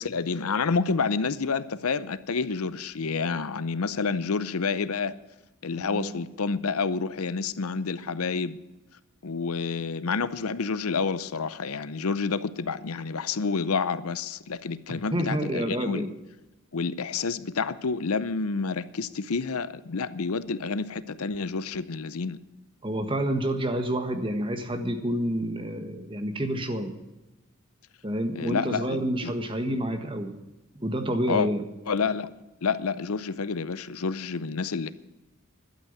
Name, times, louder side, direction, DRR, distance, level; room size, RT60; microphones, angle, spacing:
voice 1, 0.0-5.2 5.6-8.6 9.2-16.1 16.7-22.4 28.4-29.3 31.3-31.5 31.9-32.3 32.6-34.9, left 4 dB, 85° left, 0.7 m, -29 dB
voice 2, 5.8-6.2 14.9-16.1 22.8-26.9 28.0-30.3 30.7-31.6, right 1 dB, 25° right, 1.4 m, -29 dB
12.5 x 8.5 x 9.5 m
head